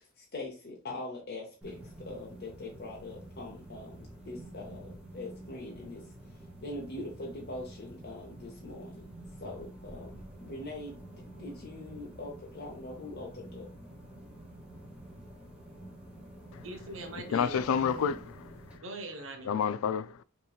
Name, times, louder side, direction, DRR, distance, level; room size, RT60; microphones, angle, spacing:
voice 1, 0.0-6.0 6.3-9.0 9.4-13.7, left 2 dB, 50° left, 0.8 m, -43 dB
sound 1, 1.6-18.8, right 1 dB, 5° right, 1.1 m, -49 dB
voice 2, 16.6-18.1 18.8-19.5, right 1 dB, 65° right, 1.0 m, -42 dB
voice 3, 17.2-18.8 19.4-20.2, left 7 dB, 75° left, 0.3 m, -30 dB
5.5 x 3.0 x 2.4 m
head